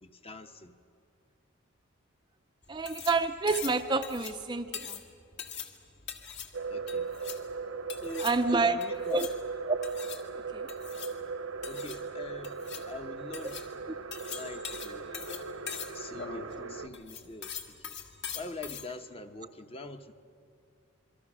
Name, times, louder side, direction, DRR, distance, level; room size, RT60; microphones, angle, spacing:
voice 1, 0.0-0.7 6.7-7.1 8.0-9.3 11.7-12.6 12.8-13.6 14.3-15.1 15.9-18.0 18.3-20.1, left 2 dB, 25° left, 7 dB, 0.9 m, -43 dB
sound 1, 2.6-18.9, left 7 dB, 55° left, 1.8 m, -43 dB
voice 2, 2.7-5.0 8.2-8.8 9.1-9.3 9.7-9.8 10.5-10.7, right 3 dB, 20° right, 7 dB, 0.5 m, -28 dB
sound 2, 6.5-16.9, right 4 dB, 70° right, 0.9 m, -38 dB
27.5 x 23.5 x 6.2 m, 2.5 s
head